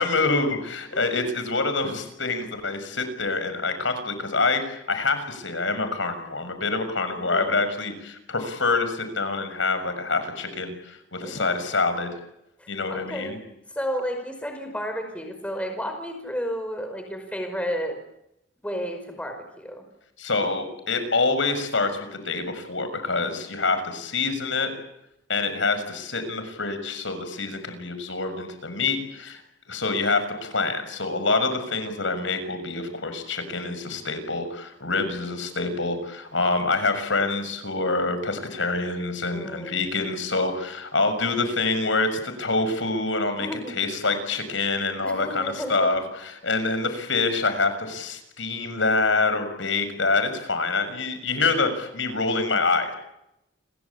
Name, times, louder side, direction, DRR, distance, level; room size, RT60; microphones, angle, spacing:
voice 1, 0.0-12.1 12.7-13.4 20.2-24.7 25.3-29.4 29.7-52.9, left 3 dB, 90° left, 9 dB, 6.7 m, -26 dB
voice 2, 7.1-7.6 11.2-11.5 12.6-13.4 13.7-18.0 18.6-19.8 39.3-39.9 43.4-43.8 45.0-45.9 51.1-51.4, equal, 5° left, 5 dB, 5.2 m, -32 dB
29.5 x 22.5 x 8.7 m, 0.83 s
head